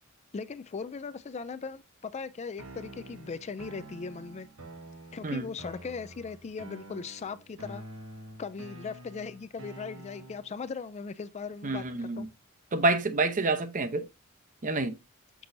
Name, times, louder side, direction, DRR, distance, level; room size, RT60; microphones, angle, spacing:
voice 1, 0.3-4.5 5.1-7.8 8.4-12.3, left 5 dB, 30° left, 0.4 m, -39 dB
sound 1, 2.6-10.6, right 1 dB, 80° right, 1.3 m, -47 dB
voice 2, 11.6-12.3 12.7-14.0 14.6-14.9, right 3 dB, 40° right, 0.7 m, -28 dB
6.4 x 6.1 x 2.6 m
head